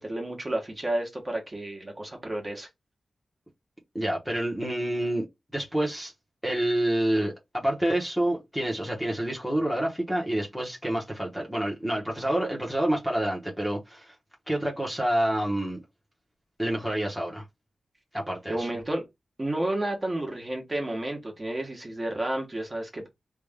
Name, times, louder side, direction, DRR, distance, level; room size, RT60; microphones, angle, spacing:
voice 1, 0.0-2.7 18.5-19.1 19.4-23.1, right 1 dB, 25° right, 1.3 m, -31 dB
voice 2, 3.9-5.2 5.5-6.1 6.4-14.1 14.5-15.8 16.6-17.4 18.1-18.7, right 1 dB, ahead, 1.1 m, -28 dB
3.4 x 2.5 x 3.5 m
wide cardioid pair, 115°, 0 cm